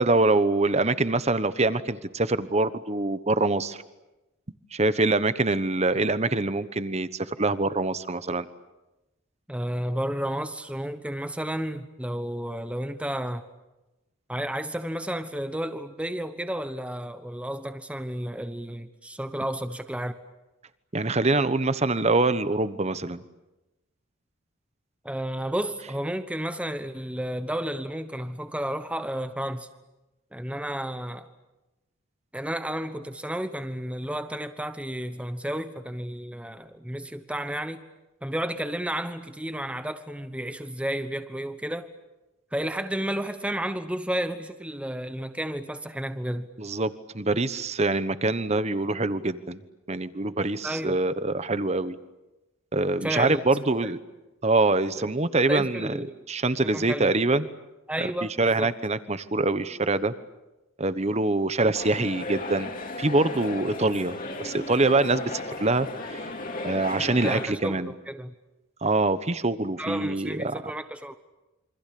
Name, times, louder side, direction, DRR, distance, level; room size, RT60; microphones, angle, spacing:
voice 1, 0.0-3.8 4.7-8.5 20.9-23.2 46.6-49.6 49.9-52.0 52.7-54.0 54.4-55.9 56.3-57.5 58.2-60.1 60.8-62.7 63.0-66.2 66.6-67.9 68.8-70.6, right 2 dB, 30° right, 1.1 m, -24 dB
voice 2, 9.5-13.5 14.3-20.1 25.0-29.7 30.3-31.3 32.3-37.8 38.2-41.9 42.5-46.5 50.6-51.0 53.0-53.4 53.8-53.9 55.0-55.1 55.5-56.1 56.7-57.1 57.9-58.7 67.2-68.3 69.8-71.2, right 1 dB, 5° right, 1.1 m, -32 dB
sound 1, 61.7-67.5, left 2 dB, 40° left, 3.0 m, -35 dB
28.0 x 25.0 x 8.5 m
head